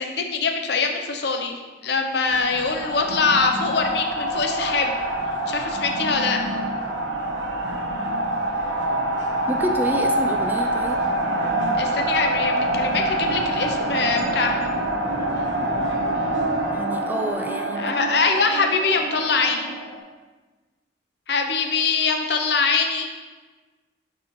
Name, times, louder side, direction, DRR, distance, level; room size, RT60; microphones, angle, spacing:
voice 1, 0.0-5.0 5.5-6.4 11.8-14.7 17.8-19.7 21.3-23.1, left 4 dB, 60° left, 4 dB, 0.7 m, -23 dB
sound 1, 2.3-20.0, right 1 dB, 80° right, 1.0 m, -26 dB
voice 2, 9.5-11.1 16.7-18.0, equal, 10° right, 4 dB, 0.3 m, -28 dB
10.5 x 4.0 x 3.1 m, 1.3 s
head